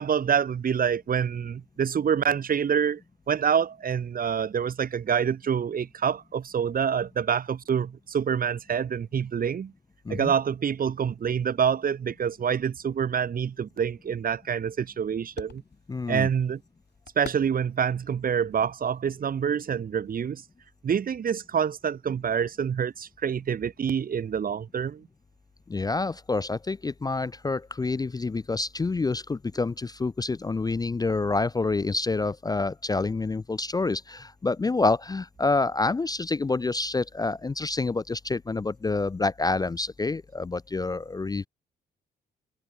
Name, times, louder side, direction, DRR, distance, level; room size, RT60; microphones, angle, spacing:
voice 1, 0.0-3.0 3.3-9.7 10.1-15.6 16.1-16.6 17.2-20.4 20.8-25.1, right 7 dB, 50° right, 0.8 m, -26 dB
sound 1, 13.2-19.5, left 7 dB, 60° left, 7.8 m, -50 dB
voice 2, 15.9-16.3 25.7-41.5, left 3 dB, 20° left, 0.4 m, -27 dB
cardioid pair, 65°, 20 cm